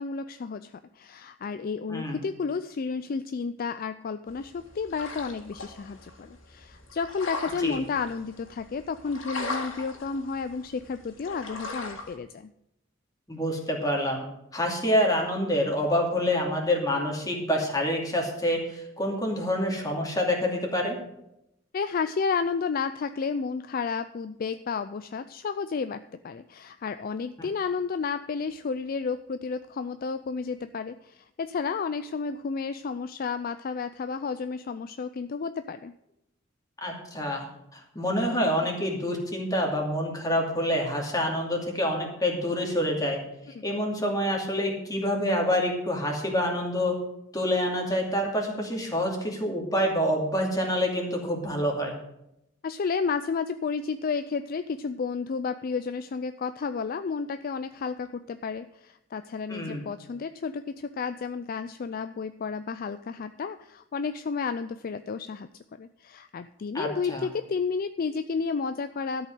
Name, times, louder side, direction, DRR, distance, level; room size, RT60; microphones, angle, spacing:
voice 1, 0.0-12.5 21.7-35.9 43.5-43.7 52.6-65.5 65.8-69.3, left 5 dB, 45° left, 11 dB, 0.4 m, -32 dB
voice 2, 1.9-2.2 7.6-7.8 13.3-14.2 14.5-21.0 36.8-37.4 37.7-43.2 43.6-47.0 47.3-51.9 59.5-59.8 66.7-67.3, equal, 20° left, 0 dB, 2.6 m, -27 dB
sound 1, 4.3-12.2, left 2 dB, 70° left, 2.2 m, -39 dB
13.0 x 5.5 x 7.8 m, 0.81 s
head